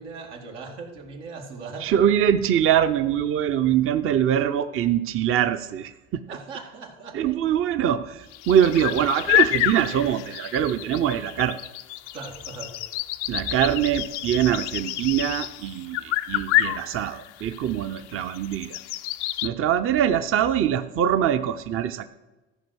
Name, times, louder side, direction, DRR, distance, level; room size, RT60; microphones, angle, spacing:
voice 1, 0.0-2.0 6.3-7.4 12.1-12.8, right 4 dB, 90° right, 1 dB, 2.0 m, -39 dB
voice 2, 1.8-6.4 7.1-11.7 13.3-18.8 19.4-22.0, right 10 dB, 40° right, 10 dB, 0.6 m, -23 dB
sound 1, 8.3-19.5, left 15 dB, 85° left, 0.6 m, -28 dB
14.0 x 5.2 x 6.2 m, 1.1 s
hypercardioid pair, 80°, 35 cm